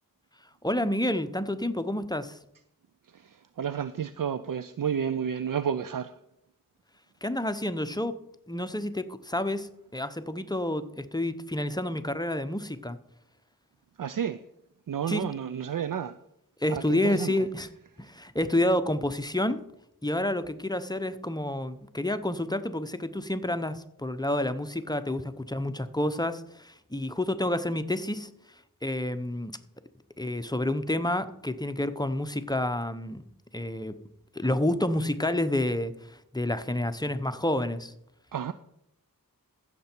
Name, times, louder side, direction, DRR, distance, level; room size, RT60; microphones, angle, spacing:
voice 1, 0.6-2.4 7.2-8.2 8.5-13.0 15.1-15.3 16.6-17.7 18.0-19.6 20.0-28.3 28.8-29.6 30.2-33.2 33.5-33.9 34.3-37.9, left 1 dB, 10° left, 0.7 m, -29 dB
voice 2, 3.2-6.1 14.0-14.4 14.9-16.2 16.7-17.3 38.3-38.5, right 8 dB, 65° right, 0.5 m, -31 dB
15.0 x 6.8 x 4.5 m
wide cardioid pair, 55°, 35 cm